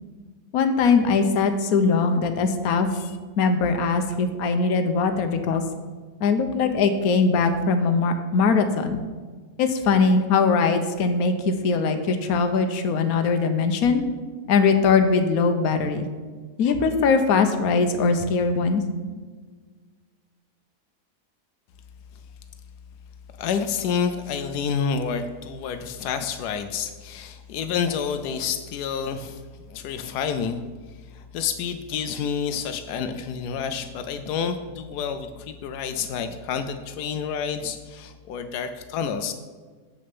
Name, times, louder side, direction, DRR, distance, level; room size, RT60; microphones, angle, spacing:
voice 1, 0.5-3.0 3.4-5.6 6.2-9.0 9.6-14.0 14.5-16.1 16.6-18.8, left 4 dB, 70° left, 7 dB, 1.2 m, -21 dB
voice 2, 23.4-29.4 29.7-30.6 31.1-39.3, left 6 dB, 90° left, 8 dB, 1.1 m, -29 dB
7.7 x 6.3 x 6.0 m, 1.5 s
omnidirectional pair, 1.7 m